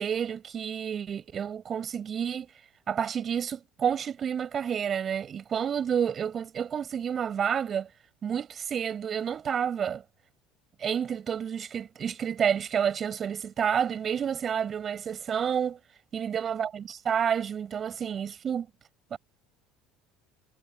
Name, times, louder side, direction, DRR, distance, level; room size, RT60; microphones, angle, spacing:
voice 1, 0.0-2.5 2.9-7.9 8.2-10.0 10.8-15.8 16.1-18.7 19.1-19.2, right 8 dB, 40° right, 7.5 m, -29 dB
supercardioid pair, 100°, 0 cm